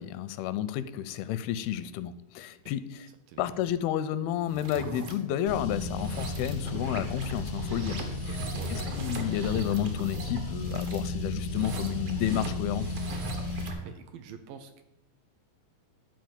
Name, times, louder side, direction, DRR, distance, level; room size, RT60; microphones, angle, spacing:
voice 1, 0.0-3.1 3.4-8.0 8.7-12.9, left 11 dB, 85° left, 13 dB, 2.5 m, -31 dB
voice 2, 3.3-3.6 7.9-9.0 13.9-14.8, right 7 dB, 75° right, 8 dB, 2.2 m, -47 dB
sound 1, 4.4-5.1 5.8-13.9, right 2 dB, 55° right, 1.8 m, -40 dB
Car, 5.5-13.7, left 2 dB, 55° left, 1.0 m, -34 dB
11.5 x 4.5 x 7.9 m, 0.89 s
omnidirectional pair, 4.4 m